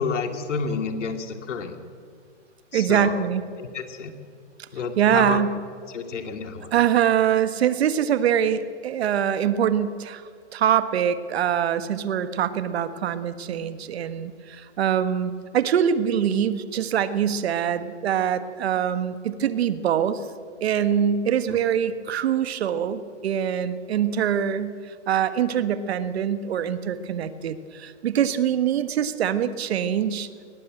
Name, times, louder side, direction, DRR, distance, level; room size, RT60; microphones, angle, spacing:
voice 1, 0.0-1.8 2.7-3.3 3.6-4.1 4.7-5.4 5.9-6.7 21.5-21.6, left 5 dB, 75° left, 6 dB, 2.5 m, -30 dB
voice 2, 2.7-3.4 5.0-5.5 6.7-10.2 10.5-20.2 20.6-24.7 25.1-30.3, right 9 dB, 55° right, 11 dB, 1.6 m, -24 dB
21.5 x 19.0 x 7.8 m, 2.2 s
hypercardioid pair, 155°, 36 cm